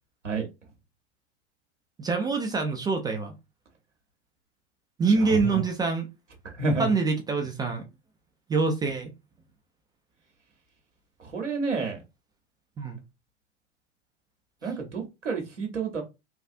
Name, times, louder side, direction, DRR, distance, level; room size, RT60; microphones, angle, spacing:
voice 1, 2.0-3.3 5.0-6.1 6.8-7.8 8.5-9.1 12.8-13.0 14.6-14.7, right 4 dB, 10° right, 0.3 m, -25 dB
voice 2, 6.4-6.9 11.2-12.0 14.6-16.0, right 3 dB, 90° right, 0.9 m, -29 dB
3.3 x 2.3 x 2.6 m
figure-of-eight pair, 95°, 36 cm